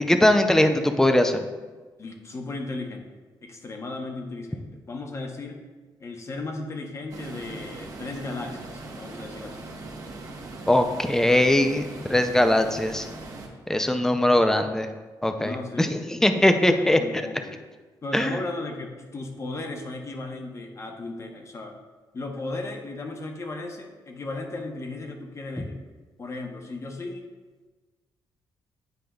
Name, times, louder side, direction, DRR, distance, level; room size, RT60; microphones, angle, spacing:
voice 1, 0.0-1.5 10.7-13.1 13.7-14.9 15.2-17.2 18.1-18.4 25.6-25.7, left 1 dB, 5° left, 7 dB, 0.4 m, -21 dB
voice 2, 2.0-3.1 3.4-5.6 6.0-9.6 15.4-16.1 16.7-17.6 18.0-21.7 22.1-25.8 26.2-27.2, left 2 dB, 35° left, 2 dB, 0.9 m, -35 dB
sound 1, 7.1-13.5, right 2 dB, 40° right, 1.0 m, -40 dB
9.3 x 4.9 x 2.3 m, 1.3 s
cardioid pair, 110°, 8 cm